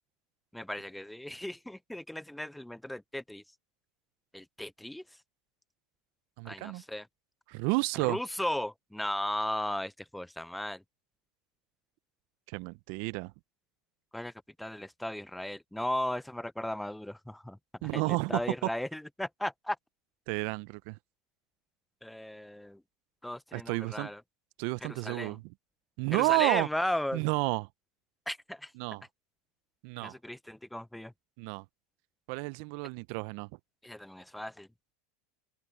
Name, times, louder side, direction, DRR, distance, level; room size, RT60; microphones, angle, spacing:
voice 1, 0.5-3.4 4.3-5.0 6.4-7.1 8.1-10.8 14.1-14.3 14.6-17.6 17.9-19.8 22.0-22.8 23.2-24.2 24.8-25.4 26.1-27.2 28.3-28.7 30.0-31.1 33.8-34.7, left 1 dB, 5° left, 0.6 m, -36 dB
voice 2, 6.4-6.8 7.5-8.2 12.5-13.3 17.8-18.4 20.3-21.0 23.5-24.1 24.6-25.4 26.0-26.7 27.1-27.7 28.8-29.0 29.8-30.2 31.4-31.6 32.3-33.5, right 27 dB, 60° right, 0.6 m, -31 dB
open air
hypercardioid pair, 105°, 0 cm